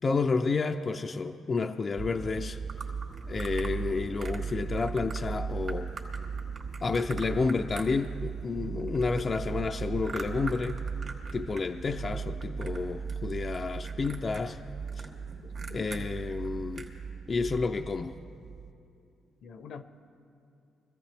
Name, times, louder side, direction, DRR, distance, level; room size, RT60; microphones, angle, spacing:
voice 1, 0.0-2.6 3.3-5.9 6.8-10.8 11.3-14.6 15.0-15.1 15.7-16.9 17.3-18.1, left 4 dB, 35° left, 0.4 m, -30 dB
sound 1, 2.0-18.7, right 5 dB, 35° right, 0.4 m, -37 dB
sound 2, 2.7-3.7 4.2-4.5 4.8-5.2 5.7-8.4 8.7-11.7 11.9-12.8 13.1-13.6 13.8-16.0 16.4-16.5 16.7-17.0, right 4 dB, 55° right, 2.4 m, -43 dB
voice 2, 15.4-16.1 19.4-19.8, left 5 dB, 70° left, 0.8 m, -46 dB
24.0 x 15.0 x 3.4 m
cardioid pair, 95°, 0 cm